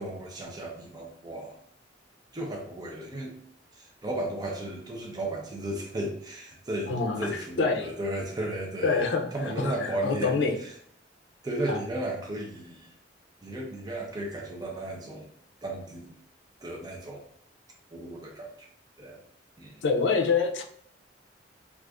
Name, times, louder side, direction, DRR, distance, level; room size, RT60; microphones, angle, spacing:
voice 1, 0.0-1.6 2.3-3.4 3.7-10.7 11.4-12.9 13.4-15.3 15.6-16.1 16.6-17.2 17.9-18.7 19.0-19.2 19.6-19.8, right 1 dB, 20° right, -1 dB, 0.5 m, -35 dB
voice 2, 6.9-7.3 7.6-7.9 8.8-9.3 9.8-10.6 11.7-11.8 19.8-20.6, left 4 dB, 70° left, 4 dB, 0.5 m, -25 dB
2.5 x 2.4 x 3.4 m, 0.66 s
head